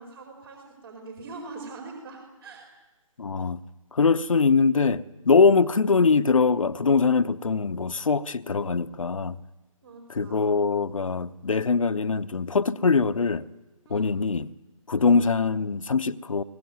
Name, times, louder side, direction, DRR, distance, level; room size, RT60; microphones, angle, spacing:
voice 1, 0.0-2.6 9.8-10.4 13.8-14.1 14.9-15.2, right 3 dB, 45° right, 4.7 m, -43 dB
voice 2, 3.2-3.6 3.9-9.4 10.1-13.4 13.9-14.5 14.9-16.4, left 4 dB, 75° left, 0.9 m, -22 dB
22.5 x 18.5 x 9.4 m
figure-of-eight pair, 150°, 17 cm